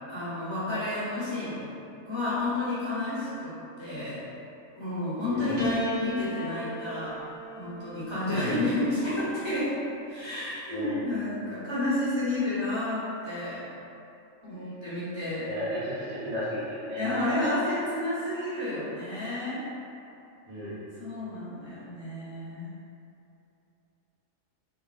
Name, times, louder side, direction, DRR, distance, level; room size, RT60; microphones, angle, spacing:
voice 1, 0.1-1.7 2.0-4.2 4.8-7.2 7.6-9.7 10.1-13.6 14.4-15.5 17.0-19.6 21.0-22.7, left 2 dB, 25° left, -13 dB, 0.9 m, -31 dB
voice 2, 5.3-5.6 8.3-8.7 10.7-11.0 15.4-17.1 20.4-20.8, left 1 dB, 90° right, -11 dB, 1.6 m, -34 dB
Piano, 5.6-10.1 11.1-11.8, right 1 dB, 45° right, 0.8 m, -38 dB
3.4 x 3.3 x 2.4 m, 2.7 s
omnidirectional pair, 1.4 m